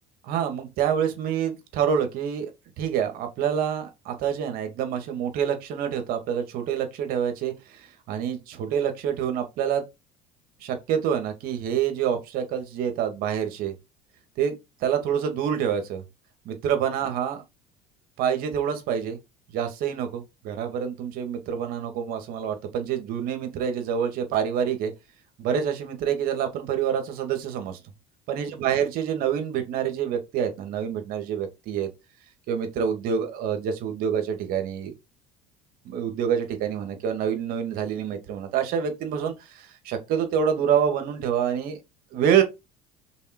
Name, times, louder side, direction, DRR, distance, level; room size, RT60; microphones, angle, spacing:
voice 1, 0.2-2.5 2.8-9.8 10.6-13.7 14.4-14.6 14.8-16.0 16.5-17.4 18.2-19.2 19.5-24.9 25.4-27.8 28.3-31.9 32.5-34.9 35.8-41.8 42.1-42.4, right 8 dB, 65° right, 2.2 m, -27 dB
5.6 x 4.4 x 4.5 m
supercardioid pair, 90°, 16 cm